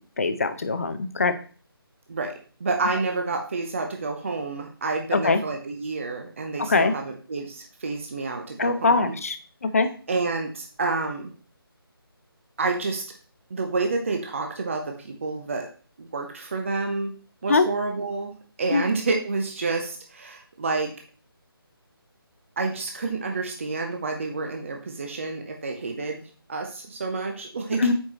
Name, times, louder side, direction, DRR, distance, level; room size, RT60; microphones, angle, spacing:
voice 1, 0.2-1.3 5.1-5.4 6.6-6.9 8.6-9.4 9.6-9.9 17.5-17.7 18.7-18.8 27.8-27.9, left 4 dB, 35° left, 11 dB, 0.7 m, -22 dB
voice 2, 2.6-9.2 10.1-11.3 12.6-13.0 13.5-15.7 16.0-17.1 17.4-18.3 18.6-20.9 22.6-26.2 26.5-27.9, right 3 dB, 30° right, 3 dB, 0.8 m, -29 dB
8.8 x 4.8 x 3.0 m, 0.40 s
figure-of-eight pair, 155°, 13 cm